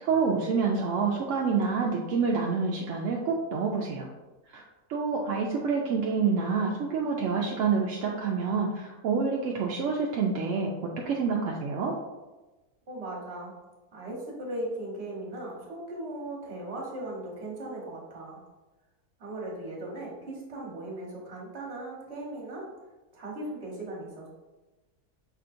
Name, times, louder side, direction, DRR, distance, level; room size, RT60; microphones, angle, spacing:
voice 1, 0.0-4.1 4.5-4.6 4.9-11.9, right 5 dB, 65° right, -1 dB, 0.8 m, -27 dB
voice 2, 12.9-13.6 13.9-18.4 19.2-22.7 23.1-24.3, right 1 dB, 45° right, -3 dB, 1.4 m, -38 dB
5.7 x 3.4 x 2.5 m, 1.1 s
omnidirectional pair, 1.6 m